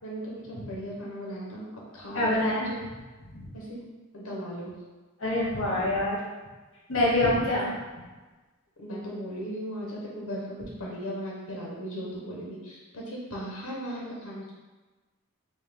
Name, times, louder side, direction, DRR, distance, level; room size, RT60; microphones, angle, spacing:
voice 1, 0.0-2.8 3.5-3.8 4.1-4.7 8.8-14.5, equal, 85° left, -4 dB, 0.8 m, -37 dB
voice 2, 2.1-2.7 3.3-3.4 5.2-6.2 6.9-7.7, left 1 dB, 65° left, -6 dB, 1.2 m, -25 dB
3.6 x 2.7 x 3.3 m, 1.3 s
head